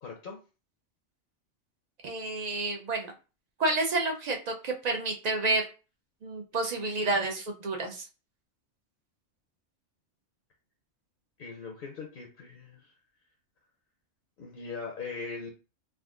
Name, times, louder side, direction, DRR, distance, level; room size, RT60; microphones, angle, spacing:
voice 1, 0.0-0.4 11.4-12.9 14.4-15.5, left 4 dB, 55° left, 2 dB, 0.7 m, -40 dB
voice 2, 2.0-3.1 3.6-5.6 6.2-8.1, right 2 dB, 50° right, 2 dB, 0.5 m, -29 dB
3.5 x 2.5 x 2.4 m, 0.33 s
omnidirectional pair, 1.3 m